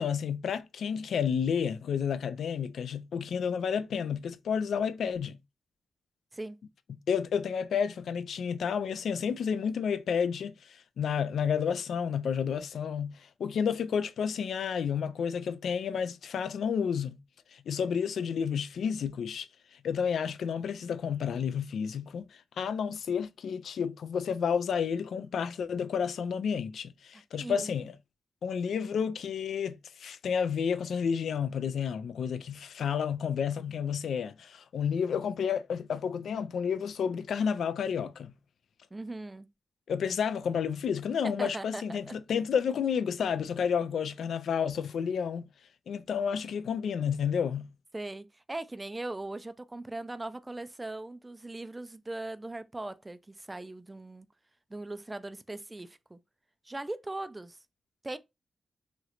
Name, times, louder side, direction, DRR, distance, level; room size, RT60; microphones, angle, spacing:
voice 1, 0.0-5.4 6.9-17.2 17.5-22.3 22.6-28.0 28.4-38.3 39.9-45.4 45.9-47.7, left 7 dB, 80° left, 0.3 m, -31 dB
voice 2, 27.4-27.7 38.9-39.5 41.2-42.1 47.9-54.3 54.7-56.2 56.7-57.6 58.0-58.2, right 2 dB, 20° right, 0.3 m, -39 dB
3.1 x 2.9 x 2.4 m
cardioid pair, 90°, 0 cm